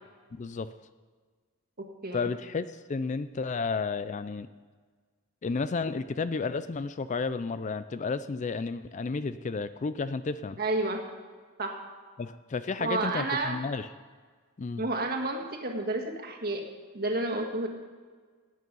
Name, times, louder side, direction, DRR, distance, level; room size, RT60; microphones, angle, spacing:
voice 1, 0.4-0.7 2.1-4.5 5.4-10.6 12.2-13.9 14.6-14.8, left 4 dB, 35° left, 13 dB, 0.4 m, -32 dB
voice 2, 10.6-11.0 11.6-11.8 12.8-13.6 14.8-16.6 16.9-17.7, right 2 dB, 45° right, 2 dB, 1.9 m, -30 dB
17.5 x 9.3 x 5.4 m, 1.5 s
head